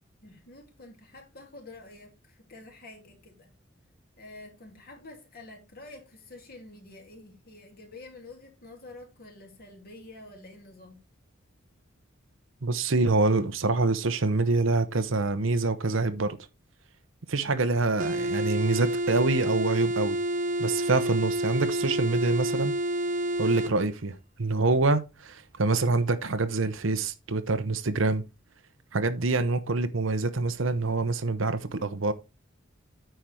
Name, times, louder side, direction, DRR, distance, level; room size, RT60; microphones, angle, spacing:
voice 1, 0.2-3.5 4.2-11.0, left 2 dB, 50° left, 2.8 m, -48 dB
voice 2, 12.6-16.4 17.3-20.2 20.6-22.8 23.4-28.2 28.9-32.1, right 3 dB, 85° right, 0.9 m, -26 dB
sound 1, 18.0-23.8, right 1 dB, 40° right, 0.8 m, -29 dB
9.2 x 5.2 x 4.5 m
head